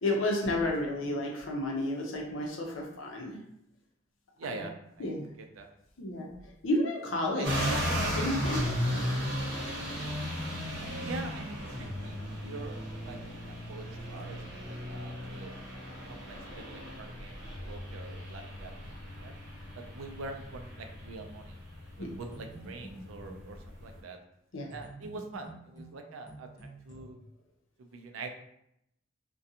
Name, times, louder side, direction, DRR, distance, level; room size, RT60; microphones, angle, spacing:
voice 1, 0.0-3.4 5.0-5.3 6.0-6.3 6.6-7.7 8.1-9.0 9.5-9.6 22.0-22.1 24.5-24.7, left 1 dB, 70° left, 0 dB, 0.6 m, -31 dB
voice 2, 4.4-5.1 5.4-5.7 7.3-7.7 11.0-15.5 16.1-18.7 19.2-19.3 19.8-21.6 22.0-24.2 24.7-27.2 27.8-28.3, right 3 dB, 90° right, 5 dB, 0.4 m, -44 dB
sound 1, 7.4-24.0, equal, 60° right, 0.9 m, -36 dB
sound 2, 22.0-23.5 24.7-27.0, right 1 dB, 20° left, 0.7 m, -48 dB
2.4 x 2.2 x 2.7 m, 0.78 s
head